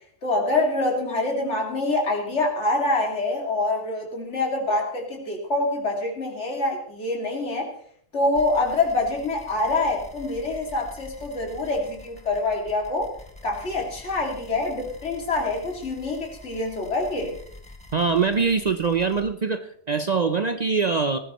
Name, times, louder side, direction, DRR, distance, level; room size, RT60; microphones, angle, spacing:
voice 1, 0.2-7.7 8.1-13.1 13.4-17.4, left 2 dB, 75° left, 0 dB, 2.8 m, -25 dB
sound 1, 8.3-19.2, left 2 dB, 5° left, 1.8 m, -46 dB
voice 2, 17.9-21.2, right 5 dB, 45° right, 8 dB, 0.7 m, -23 dB
19.0 x 15.0 x 3.1 m, 0.62 s
omnidirectional pair, 1.2 m